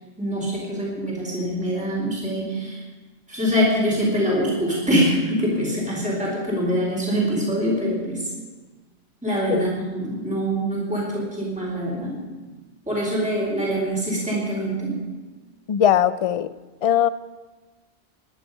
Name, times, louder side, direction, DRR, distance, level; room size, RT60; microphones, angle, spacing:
voice 1, 0.2-2.8 3.3-8.3 9.2-12.2 12.9-15.0, equal, 5° right, -4 dB, 4.4 m, -24 dB
voice 2, 15.7-16.5 16.8-17.1, left 10 dB, 50° left, 15 dB, 0.4 m, -19 dB
21.5 x 11.0 x 5.5 m, 1.2 s
omnidirectional pair, 1.2 m